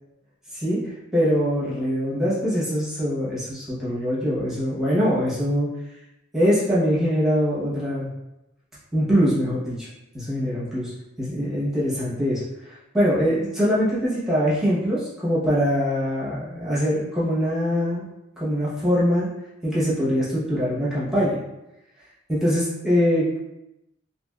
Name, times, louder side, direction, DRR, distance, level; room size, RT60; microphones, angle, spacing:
voice 1, 0.5-5.7 6.3-8.1 8.9-9.9 10.1-10.9 11.2-18.0 18.4-19.3 19.6-21.4 22.3-23.5, equal, ahead, -10 dB, 0.9 m, -23 dB
3.3 x 2.8 x 2.3 m, 0.90 s
head